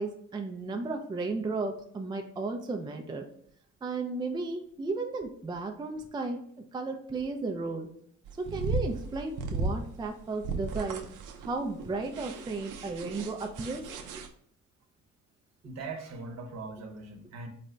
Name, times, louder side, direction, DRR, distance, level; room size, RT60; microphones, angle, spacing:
voice 1, 0.0-3.3 3.8-6.4 6.7-7.9 8.4-11.0 11.4-13.8, right 3 dB, 15° right, 4 dB, 0.4 m, -34 dB
sound 1, 8.3-14.3, right 3 dB, 85° right, 0.6 m, -35 dB
voice 2, 15.6-17.5, right 3 dB, 60° right, 4 dB, 0.9 m, -40 dB
4.1 x 2.2 x 3.7 m, 0.65 s
cardioid pair, 90°, 30 cm